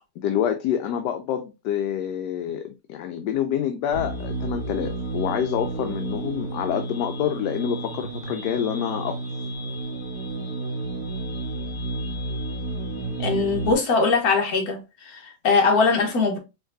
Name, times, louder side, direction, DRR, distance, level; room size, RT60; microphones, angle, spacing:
voice 1, 0.2-9.2, left 9 dB, 75° left, 1.1 m, -27 dB
sound 1, 3.9-13.7, right 2 dB, 40° left, 2.2 m, -31 dB
voice 2, 13.2-16.4, left 4 dB, 60° left, 1.5 m, -21 dB
4.8 x 3.0 x 2.6 m
omnidirectional pair, 1.9 m